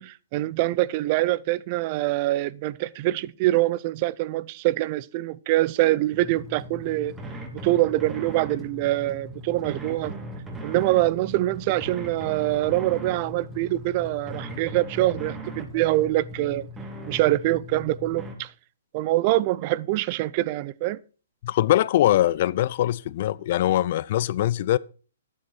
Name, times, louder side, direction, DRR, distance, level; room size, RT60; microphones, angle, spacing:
voice 1, 0.0-7.1 7.5-10.1 10.6-16.7 17.0-18.5 18.9-21.0, right 17 dB, 40° right, 0.6 m, -24 dB
sound 1, 6.1-18.3, equal, 10° right, 2.6 m, -38 dB
voice 2, 21.4-24.8, left 13 dB, 45° left, 0.5 m, -22 dB
11.0 x 9.4 x 4.5 m
figure-of-eight pair, 120°, 0 cm